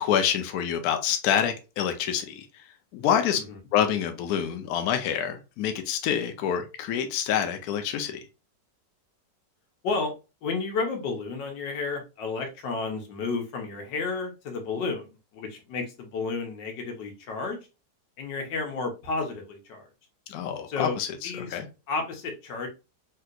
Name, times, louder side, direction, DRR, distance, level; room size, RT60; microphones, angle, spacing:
voice 1, 0.0-2.6 2.9-3.4 3.7-8.2 20.3-21.7, left 9 dB, 70° left, 7 dB, 1.0 m, -27 dB
voice 2, 10.4-17.6 18.2-19.9 20.7-21.0 21.2-21.6 21.9-22.7, left 4 dB, 85° left, 3 dB, 1.5 m, -32 dB
3.3 x 2.8 x 2.3 m, 0.28 s
omnidirectional pair, 1.9 m